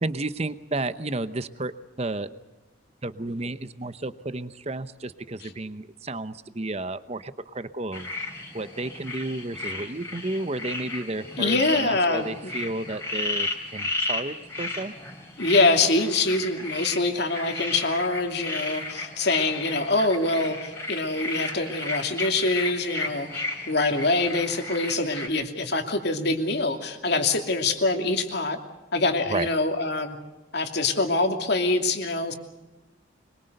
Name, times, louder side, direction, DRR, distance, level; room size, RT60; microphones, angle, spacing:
voice 1, 0.0-1.7 2.0-2.3 3.0-8.1 8.5-14.9 29.3-29.5, right 2 dB, 30° right, 13 dB, 0.9 m, -32 dB
sound 1, 7.9-25.3, left 2 dB, 15° left, 3.6 m, -34 dB
voice 2, 11.4-12.5 15.4-28.6 28.9-30.2 30.5-32.3, left 2 dB, 55° left, 4 dB, 2.7 m, -24 dB
24.0 x 22.5 x 6.7 m, 1.1 s
head